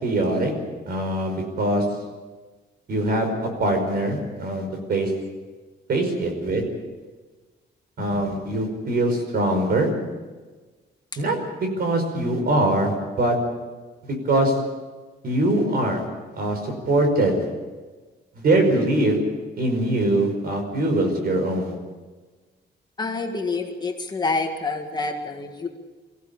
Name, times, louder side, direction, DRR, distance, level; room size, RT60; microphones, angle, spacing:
voice 1, 0.0-0.5 0.9-1.8 2.9-5.1 5.9-6.6 8.0-9.9 11.2-13.4 14.3-14.6 15.2-16.0 16.3-17.5 18.4-19.2 19.6-21.7, right 1 dB, 55° right, 5 dB, 5.3 m, -22 dB
voice 2, 23.0-25.7, left 3 dB, 20° left, 3 dB, 1.9 m, -28 dB
24.0 x 15.5 x 8.6 m, 1.3 s
wide cardioid pair, 160°, 18 cm